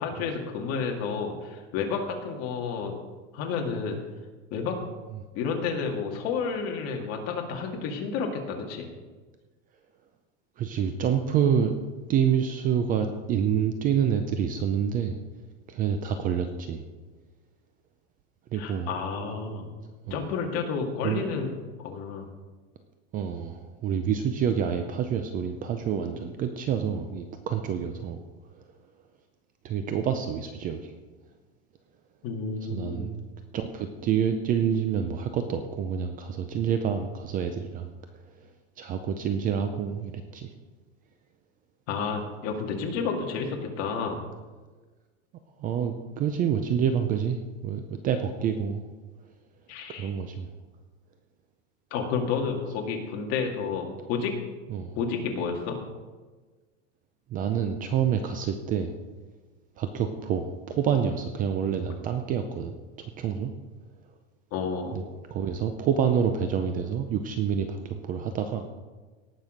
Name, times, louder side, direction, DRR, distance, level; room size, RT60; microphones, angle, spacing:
voice 1, 0.0-2.9 3.3-4.0 4.5-4.8 5.4-8.9 18.5-19.7 20.1-21.5 21.8-22.3 32.2-33.1 41.9-44.2 49.7-50.1 51.9-54.3 55.0-55.8 64.5-65.0, left 5 dB, 40° left, 1 dB, 2.2 m, -30 dB
voice 2, 10.6-11.7 12.1-15.2 15.7-16.8 18.5-18.9 20.1-20.2 21.0-21.2 23.1-28.2 29.6-30.9 32.7-33.1 33.5-37.9 38.8-40.5 45.6-48.8 49.9-50.5 54.7-55.0 57.3-58.9 59.8-63.5 64.9-65.0 65.3-68.7, right 8 dB, 25° right, 7 dB, 0.5 m, -27 dB
18.0 x 6.2 x 5.1 m, 1.3 s
supercardioid pair, 155°, 36 cm